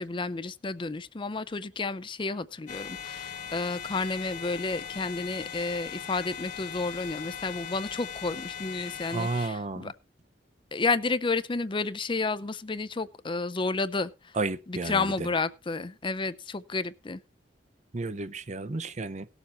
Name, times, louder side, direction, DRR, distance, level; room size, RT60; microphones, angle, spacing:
voice 1, 0.0-9.9 10.7-14.4 14.7-17.2, left 3 dB, 30° left, 0.5 m, -31 dB
sound 1, 2.7-9.5, left 8 dB, 50° left, 1.4 m, -39 dB
voice 2, 9.1-9.9 14.4-15.3 17.9-19.3, right 3 dB, 40° right, 0.7 m, -32 dB
18.0 x 7.0 x 4.3 m
head